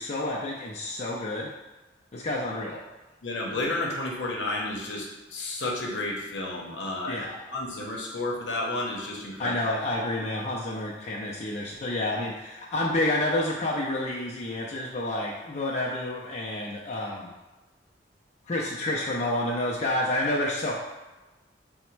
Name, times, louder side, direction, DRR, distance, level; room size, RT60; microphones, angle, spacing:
voice 1, 0.0-1.5 2.1-2.8 7.1-7.4 9.4-17.3 18.5-20.7, left 1 dB, 40° left, -4 dB, 0.4 m, -29 dB
voice 2, 3.2-9.5, left 2 dB, 70° left, -2 dB, 0.8 m, -31 dB
3.9 x 2.1 x 4.5 m, 1.1 s
head